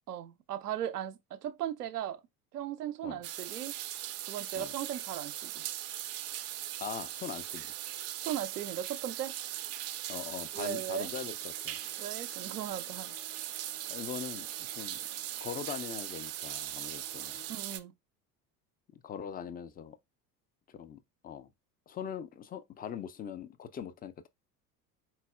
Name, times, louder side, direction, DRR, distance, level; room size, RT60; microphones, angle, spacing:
voice 1, 0.1-2.2 2.5-3.7 4.3-5.7 8.2-9.4 10.5-11.1 12.0-13.1 17.5-17.9, right 10 dB, 85° right, 0.6 m, -37 dB
sound 1, 3.2-17.8, right 13 dB, 35° right, 0.5 m, -39 dB
voice 2, 6.8-7.7 10.1-11.8 13.9-15.0 15.4-17.4 18.9-20.0 20.7-21.5 21.9-24.3, left 8 dB, 20° left, 0.4 m, -41 dB
sound 2, 10.6-17.6, left 6 dB, 75° left, 1.6 m, -60 dB
4.3 x 4.0 x 2.3 m
figure-of-eight pair, 65°, 46 cm